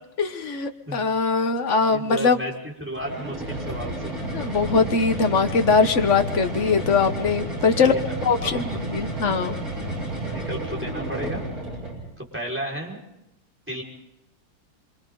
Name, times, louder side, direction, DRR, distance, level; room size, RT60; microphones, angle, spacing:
voice 1, 0.2-2.4 4.3-7.9 8.2-9.6, left 5 dB, 40° left, 7 dB, 1.2 m, -21 dB
voice 2, 1.9-4.1 7.8-8.8 10.0-11.4 12.2-13.0 13.7-13.8, right 1 dB, 5° right, -2 dB, 5.2 m, -33 dB
sound 1, 2.9-12.1, right 1 dB, 75° right, 7.5 m, -31 dB
26.5 x 25.5 x 4.0 m, 0.88 s
omnidirectional pair, 2.4 m